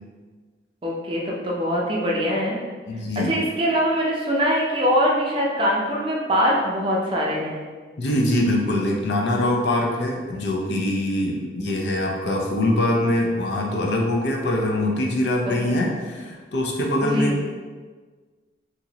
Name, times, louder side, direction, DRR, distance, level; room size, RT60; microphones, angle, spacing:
voice 1, 0.8-2.6 3.2-7.6 15.5-15.8 17.0-17.3, equal, 30° right, -3 dB, 0.5 m, -23 dB
voice 2, 2.9-3.4 8.0-17.5, left 1 dB, 75° left, 0 dB, 0.5 m, -23 dB
2.9 x 2.5 x 2.8 m, 1.4 s
head